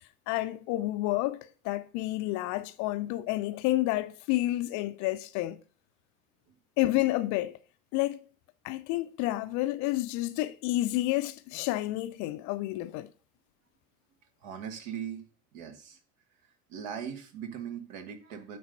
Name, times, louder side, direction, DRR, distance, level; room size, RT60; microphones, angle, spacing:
voice 1, 0.3-5.6 6.8-7.6 7.9-8.2 8.6-13.1, left 17 dB, 40° left, 0.5 m, -30 dB
voice 2, 14.4-15.2 15.5-16.0 16.7-18.6, right 8 dB, 55° right, 1.5 m, -39 dB
9.3 x 4.0 x 5.7 m
figure-of-eight pair, 70°, 46 cm